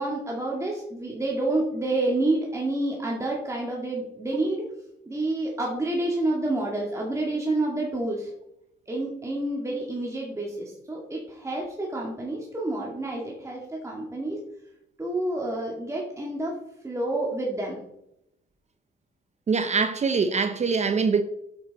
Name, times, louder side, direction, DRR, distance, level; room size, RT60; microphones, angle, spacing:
voice 1, 0.0-4.6 5.1-8.3 8.9-14.4 15.0-16.6 16.8-17.8, right 2 dB, 15° right, 2.0 m, -28 dB
voice 2, 19.5-21.2, right 5 dB, 35° right, 0.6 m, -23 dB
8.1 x 7.6 x 4.1 m
cardioid pair, 90°, 20 cm